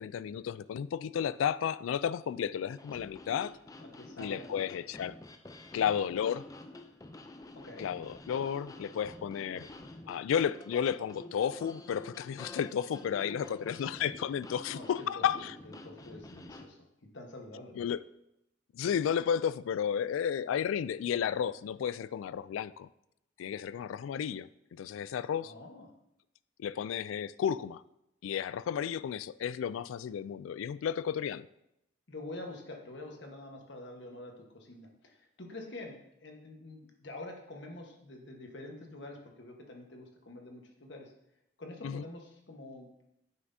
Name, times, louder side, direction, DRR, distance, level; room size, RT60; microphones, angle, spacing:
voice 1, 0.0-3.5 4.2-5.1 5.7-6.4 7.8-9.7 10.1-15.5 17.8-18.0 18.7-22.9 23.4-25.5 26.6-27.8 28.2-31.5 41.8-42.0, left 8 dB, 90° left, 0.3 m, -33 dB
sound 1, 2.7-16.7, left 2 dB, 20° left, 0.4 m, -49 dB
voice 2, 3.9-4.8 7.5-7.9 13.4-13.7 14.7-17.9 25.4-25.9 32.1-41.1 41.6-42.9, left 2 dB, 65° left, 1.3 m, -47 dB
9.4 x 5.9 x 2.7 m
head